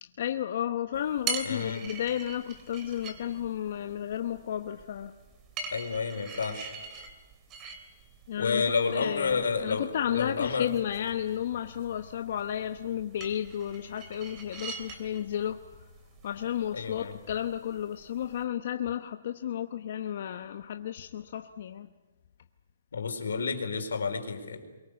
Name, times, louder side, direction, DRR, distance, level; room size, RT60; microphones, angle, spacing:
voice 1, 0.0-5.2 8.3-8.6 8.9-15.8 16.2-21.9, left 10 dB, 55° left, 0.9 m, -33 dB
sound 1, 0.9-18.4, right 5 dB, 20° right, 2.8 m, -44 dB
voice 2, 1.4-1.8 5.7-6.7 8.4-10.7 16.7-17.1 22.9-24.6, left 5 dB, 90° left, 4.3 m, -30 dB
23.5 x 23.0 x 8.2 m
hypercardioid pair, 155°, 0 cm